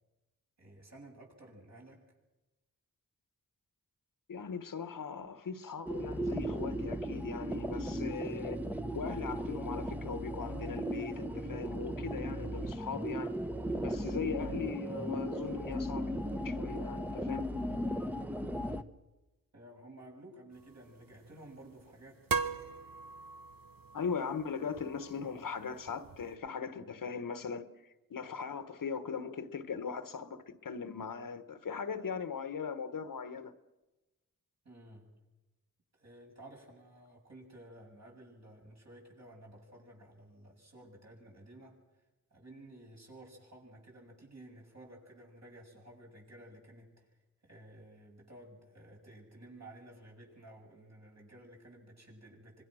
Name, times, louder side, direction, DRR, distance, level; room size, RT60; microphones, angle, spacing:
voice 1, 0.6-2.0 7.7-7.8 18.5-18.9 19.5-22.3 34.6-35.2 35.9-41.8 42.3-52.6, right 1 dB, 50° right, 8.0 m, -54 dB
voice 2, 4.3-8.6 8.9-13.3 13.8-16.1 16.4-17.4 23.9-33.5, left 6 dB, 70° left, 1.3 m, -39 dB
sound 1, 5.8-18.8, equal, 5° right, 1.1 m, -36 dB
sound 2, 20.5-26.4, right 5 dB, 85° right, 1.1 m, -41 dB
25.5 x 21.5 x 6.4 m
cardioid pair, 60°, 34 cm